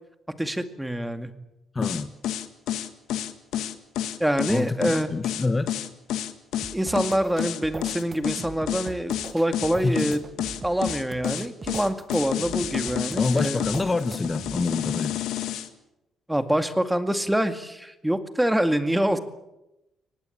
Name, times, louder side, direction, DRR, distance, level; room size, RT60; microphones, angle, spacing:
voice 1, 0.4-1.3 4.2-5.1 6.7-10.2 10.6-13.6 16.3-19.2, right 1 dB, 5° right, 9 dB, 2.2 m, -25 dB
voice 2, 1.7-2.2 4.5-5.8 9.8-10.1 13.2-15.2, left 3 dB, 25° left, 11 dB, 1.1 m, -27 dB
sound 1, 1.8-15.7, left 11 dB, 85° left, 1.8 m, -29 dB
sound 2, 6.6-14.6, right 4 dB, 35° right, 1.4 m, -41 dB
24.0 x 19.0 x 8.7 m, 0.92 s
cardioid pair, 90°, 0 cm